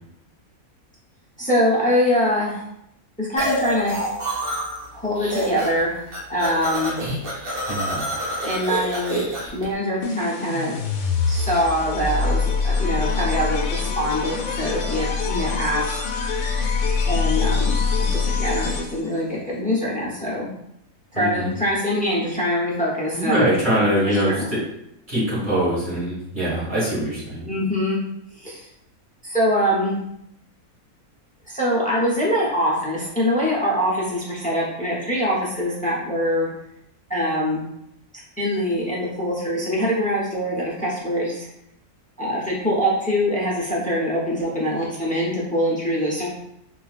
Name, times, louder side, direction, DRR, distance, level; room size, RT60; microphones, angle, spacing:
voice 1, 1.4-2.6 3.2-3.9 4.9-6.0 6.3-7.0 8.4-9.2 9.5-10.8 11.3-16.0 17.1-20.5 21.1-23.5 24.1-24.5 27.5-28.0 28.4-28.7 29.2-30.0 31.5-36.5 37.1-37.6 38.4-41.5 42.2-46.3, equal, 10° left, -6 dB, 0.4 m, -23 dB
sound 1, 3.4-4.9 5.2-5.8 6.1-9.6, equal, 70° right, 1.5 m, -27 dB
voice 2, 7.7-8.0 21.1-21.5 23.1-24.6 25.1-27.5, right 1 dB, 35° right, -8 dB, 1.7 m, -23 dB
sound 2, 10.0-19.2, left 4 dB, 75° left, 1.0 m, -24 dB
4.5 x 2.3 x 2.4 m, 0.80 s
omnidirectional pair, 1.5 m